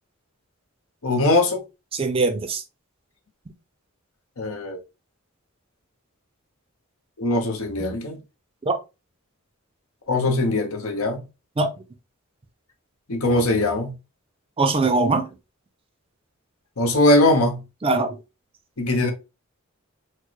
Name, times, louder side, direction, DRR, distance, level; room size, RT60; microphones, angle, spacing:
voice 1, 1.0-1.6 4.4-4.8 7.2-8.2 10.1-11.2 13.1-13.9 16.8-17.6 18.8-19.1, left 2 dB, 85° left, 0.9 m, -21 dB
voice 2, 1.9-2.6 7.8-8.0 8.7-8.8 11.6-11.7 14.6-15.3 17.8-18.1, right 3 dB, 25° right, 0.4 m, -21 dB
4.4 x 2.0 x 2.9 m
head